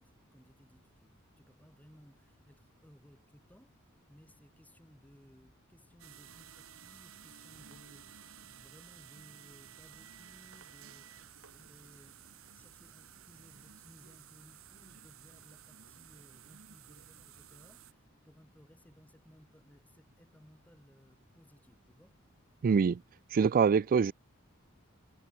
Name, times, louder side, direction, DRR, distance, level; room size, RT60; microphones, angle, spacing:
voice 1, 0.0-22.2, equal, 10° left, 3.9 m, -61 dB
sound 1, 6.0-17.9, right 9 dB, 75° right, 2.6 m, -54 dB
voice 2, 22.6-23.0 23.3-24.1, right 6 dB, 45° right, 0.3 m, -25 dB
head